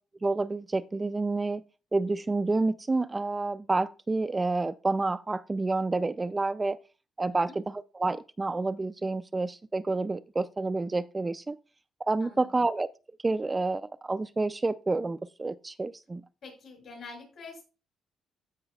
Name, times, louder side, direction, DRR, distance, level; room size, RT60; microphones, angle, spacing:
voice 1, 0.2-1.6 1.9-6.8 7.2-11.6 12.1-12.9 13.2-16.2, right 3 dB, 20° right, 0.3 m, -29 dB
voice 2, 12.2-12.6 16.4-17.6, left 4 dB, 65° left, 5.2 m, -46 dB
14.5 x 5.1 x 2.3 m
cardioid pair, 90°, 0 cm